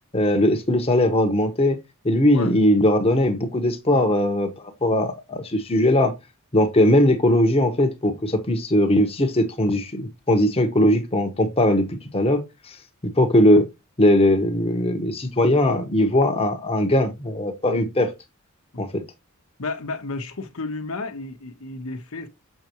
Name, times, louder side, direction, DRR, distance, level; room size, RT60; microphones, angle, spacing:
voice 1, 0.1-1.8 2.0-6.1 6.5-12.4 12.7-12.8 13.2-13.7 14.0-18.1 18.8-19.0, left 1 dB, 30° left, 1.0 m, -20 dB
voice 2, 19.6-22.3, left 3 dB, 75° left, 1.0 m, -32 dB
6.6 x 5.8 x 2.9 m
head